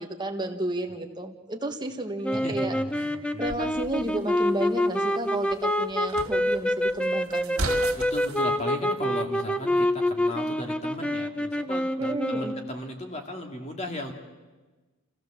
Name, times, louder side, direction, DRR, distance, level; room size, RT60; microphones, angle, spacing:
voice 1, 0.0-2.8 3.4-7.7 12.0-12.6, right 1 dB, 20° right, 4 dB, 1.5 m, -32 dB
sound 1, 2.2-12.7, left 1 dB, 5° left, 0.6 m, -27 dB
voice 2, 2.3-3.8 8.0-14.1, left 1 dB, 30° left, 3 dB, 2.2 m, -36 dB
sound 2, 3.4-8.5, right 2 dB, 90° right, 2.4 m, -38 dB
27.0 x 15.5 x 7.4 m, 1.3 s
head